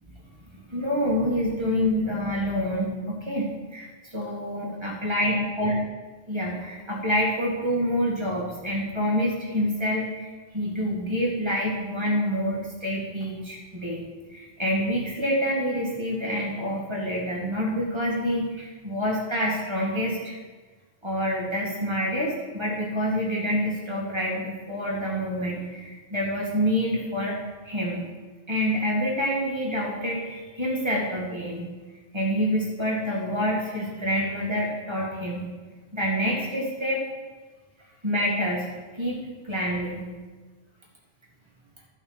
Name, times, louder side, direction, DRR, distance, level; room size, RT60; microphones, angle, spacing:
voice 1, 0.5-5.8 6.3-14.0 14.3-20.4 21.0-28.1 28.5-31.7 32.1-35.5 35.9-37.0 38.0-40.1, equal, 20° right, -4 dB, 2.2 m, -27 dB
13.5 x 5.7 x 4.8 m, 1.3 s
omnidirectional pair, 1.4 m